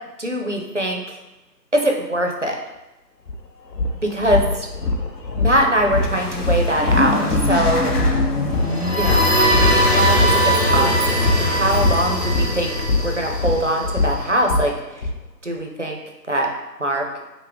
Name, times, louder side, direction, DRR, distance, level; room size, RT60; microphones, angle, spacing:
voice 1, 0.2-1.2 1.7-2.6 4.0-4.7 5.3-7.9 9.0-9.3 9.8-11.0 11.4-12.7 13.0-14.7 15.4-16.0 16.3-16.5 16.8-17.1, right 1 dB, 50° right, 2 dB, 0.5 m, -22 dB
sound 1, 3.3-3.4 3.7-15.1, left 3 dB, 80° left, 0.9 m, -23 dB
sound 2, 5.9-10.4, left 2 dB, 65° left, 1.2 m, -26 dB
sound 3, 8.6-14.3, equal, 45° left, 0.5 m, -20 dB
5.7 x 2.0 x 3.6 m, 0.99 s
figure-of-eight pair, 175°, 50 cm